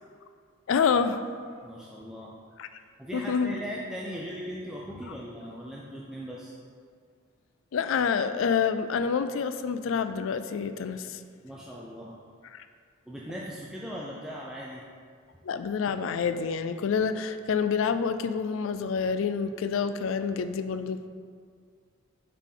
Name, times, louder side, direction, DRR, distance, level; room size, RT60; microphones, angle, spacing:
voice 1, 0.7-1.2 2.6-2.7 3.1-3.5 7.7-11.2 12.5-12.6 15.4-21.1, left 6 dB, 65° left, 10 dB, 0.3 m, -27 dB
voice 2, 1.6-2.3 3.0-6.6 11.4-12.2 13.1-14.8, equal, 5° right, -5 dB, 0.4 m, -39 dB
8.1 x 3.8 x 3.8 m, 2.1 s
head